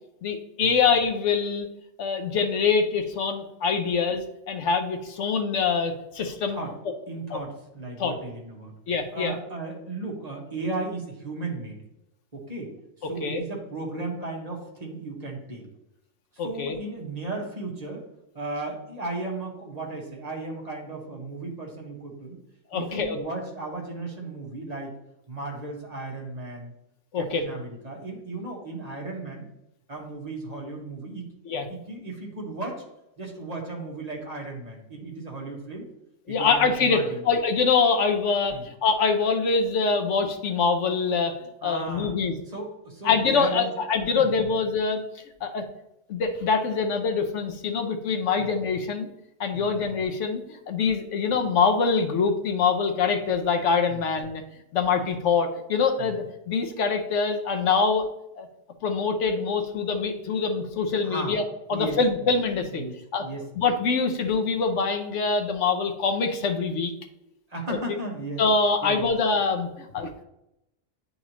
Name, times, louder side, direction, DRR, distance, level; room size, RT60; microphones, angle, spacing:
voice 1, 0.2-1.7 2.0-6.6 7.3-7.4 8.0-8.1 8.9-9.3 13.2-13.4 16.4-16.8 22.7-23.2 27.1-27.4 31.5-31.7 36.3-41.4 41.6-42.4 43.0-45.0 45.4-45.6 46.1-49.1 49.4-54.4 54.7-58.1 58.4-58.5 58.8-61.4 61.7-62.8 63.1-63.2 63.6-66.9 68.4-70.2, left 5 dB, 70° left, 6 dB, 1.1 m, -24 dB
voice 2, 7.1-8.7 9.1-11.8 12.3-12.7 13.0-15.7 16.3-18.0 18.3-22.4 22.7-24.9 25.3-26.7 27.1-29.5 29.9-31.3 31.7-32.8 33.2-35.8 36.3-37.2 38.5-38.7 41.6-42.1 42.4-43.7 44.1-44.5 48.4-48.5 49.5-49.7 53.9-54.0 56.0-56.2 61.0-61.4 61.7-62.0 62.2-62.3 62.7-63.4 67.2-68.4 68.8-69.1, right 2 dB, 30° right, -1 dB, 1.5 m, -35 dB
9.6 x 4.1 x 3.0 m, 0.86 s
omnidirectional pair, 1.3 m